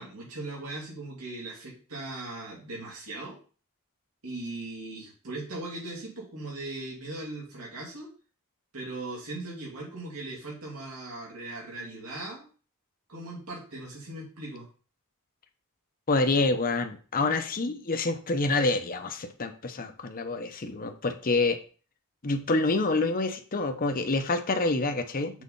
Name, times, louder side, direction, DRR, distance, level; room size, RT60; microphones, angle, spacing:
voice 1, 0.0-3.4 4.2-8.1 8.7-12.5 13.1-14.7 25.3-25.4, right 2 dB, 75° right, -3 dB, 2.6 m, -39 dB
voice 2, 16.1-21.6 22.2-25.4, left 3 dB, 40° left, 6 dB, 0.8 m, -27 dB
6.5 x 4.3 x 5.4 m, 0.39 s
head